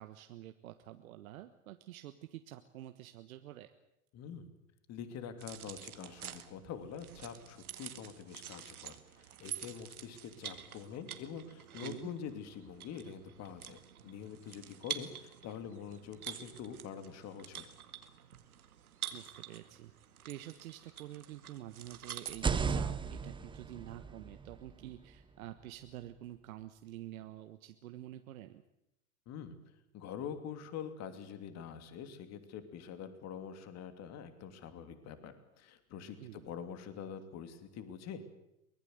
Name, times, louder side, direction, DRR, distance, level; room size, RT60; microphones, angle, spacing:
voice 1, 0.0-3.7 11.8-12.1 19.1-19.9 20.2-28.6 36.2-36.5, right 13 dB, 70° right, 8 dB, 1.4 m, -48 dB
voice 2, 4.1-4.5 4.9-17.7 29.3-29.6 29.9-38.3, left 7 dB, 35° left, 9 dB, 3.0 m, -45 dB
sound 1, 5.4-22.4, right 10 dB, 85° right, 2.1 m, -48 dB
sound 2, 22.3-26.1, right 5 dB, 10° right, 0.9 m, -37 dB
23.5 x 19.5 x 8.0 m, 0.84 s
hypercardioid pair, 115°, 43 cm